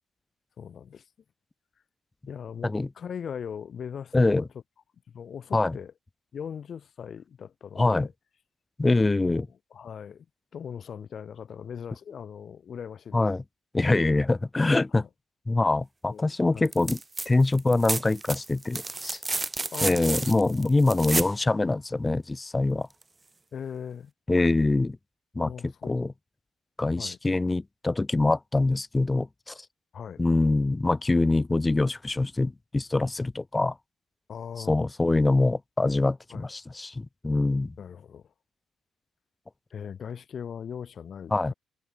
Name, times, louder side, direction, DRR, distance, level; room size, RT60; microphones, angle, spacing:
voice 1, 0.6-1.0 2.3-4.5 5.1-5.9 6.3-8.1 9.2-9.4 9.7-10.3 10.5-13.2 14.9-15.1 16.1-16.7 19.7-20.3 23.5-24.1 25.4-26.0 27.0-27.2 29.9-30.2 34.3-34.8 36.3-36.5 37.8-38.3 39.7-41.5, left 7 dB, 55° left, 5.4 m, -39 dB
voice 2, 4.1-4.4 5.5-5.8 7.8-8.1 8.8-9.5 13.1-13.4 13.7-15.0 15.5-17.0 17.2-19.2 19.8-22.9 24.3-25.0 25.3-25.5 25.9-26.1 26.8-29.6 30.2-33.7 34.7-37.7 41.3-41.5, left 2 dB, 20° left, 1.4 m, -24 dB
sound 1, 16.7-17.3 17.5-21.4 23.0-23.1, right 3 dB, 20° right, 0.5 m, -31 dB
cardioid pair, 90°, 0 cm